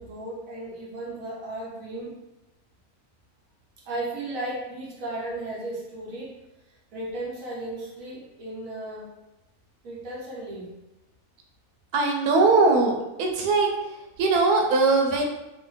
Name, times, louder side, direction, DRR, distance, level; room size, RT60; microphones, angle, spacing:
voice 1, 0.0-2.1 3.8-6.4 6.7-9.1 9.8-10.7, right 2 dB, 65° right, -4 dB, 1.2 m, -35 dB
voice 2, 11.9-12.9 13.2-13.7 14.2-15.3, right 3 dB, 90° right, 2 dB, 1.1 m, -20 dB
3.1 x 2.0 x 3.1 m, 0.98 s
omnidirectional pair, 1.6 m